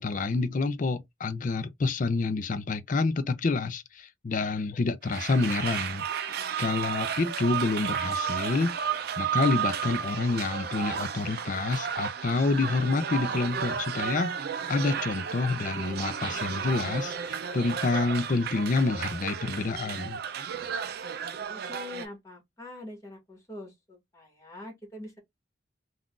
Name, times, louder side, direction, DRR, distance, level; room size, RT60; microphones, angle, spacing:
voice 1, 0.0-6.0 6.6-8.8 9.2-14.3 14.7-20.2, left 3 dB, 45° left, 0.4 m, -28 dB
sound 1, 5.0-22.1, right 7 dB, 55° right, 0.4 m, -33 dB
voice 2, 6.4-6.7 21.5-25.2, left 2 dB, 15° left, 1.6 m, -44 dB
3.7 x 2.4 x 2.3 m
head